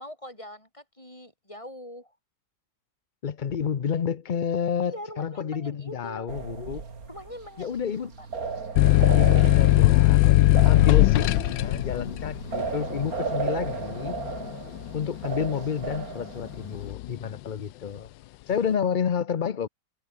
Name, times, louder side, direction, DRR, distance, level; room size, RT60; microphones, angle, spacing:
voice 1, 0.0-2.2 4.8-6.3 7.1-7.8 8.2-8.3, left 1 dB, 15° left, 8.2 m, -42 dB
voice 2, 3.2-6.8 7.6-8.1 9.2-14.2 14.9-18.1 18.5-19.7, left 7 dB, 60° left, 0.5 m, -30 dB
sound 1, 6.3-16.9, right 4 dB, 50° right, 2.9 m, -35 dB
sound 2, 8.8-16.0 16.5-17.2, left 17 dB, 90° left, 1.3 m, -20 dB
omnidirectional pair, 1.9 m